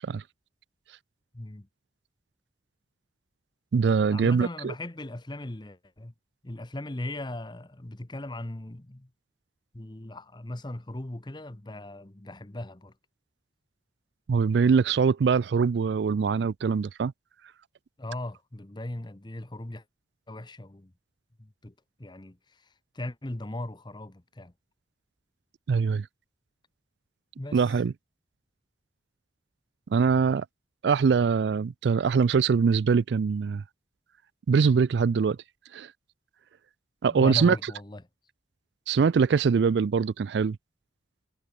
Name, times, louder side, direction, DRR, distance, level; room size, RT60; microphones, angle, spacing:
voice 1, 1.3-1.7 4.1-6.1 6.4-9.1 9.7-12.9 18.0-19.8 20.3-20.9 21.4-21.7 22.0-22.4 22.9-24.5 27.4-27.7 37.1-38.0, left 1 dB, 25° left, 1.0 m, -38 dB
voice 2, 3.7-4.7 14.3-17.1 25.7-26.1 27.5-27.9 29.9-30.5 30.8-33.6 34.5-35.4 35.7-35.9 37.0-37.6 38.9-40.6, right 5 dB, 75° right, 0.4 m, -23 dB
head